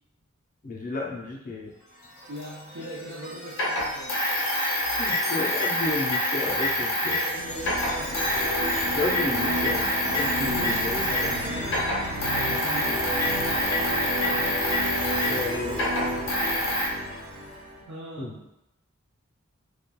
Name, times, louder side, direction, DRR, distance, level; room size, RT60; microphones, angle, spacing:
voice 1, 0.6-1.7 5.0-7.1 8.8-9.8 10.1-11.7 15.1-15.9 18.2-18.4, left 2 dB, 40° left, -2 dB, 0.5 m, -32 dB
Chime, 1.7-17.6, left 1 dB, 90° left, 1.1 m, -42 dB
voice 2, 2.3-4.2 7.0-8.6 10.4-11.9 12.3-13.1 17.9-18.5, right 1 dB, 75° right, -8 dB, 0.6 m, -40 dB
sound 1, 2.4-2.5 3.5-7.3 7.6-11.4 11.6-16.9, left 1 dB, 65° left, 0.8 m, -26 dB
sound 2, 7.3-17.8, equal, 35° right, 0.7 m, -32 dB
2.8 x 2.3 x 2.2 m, 0.87 s
head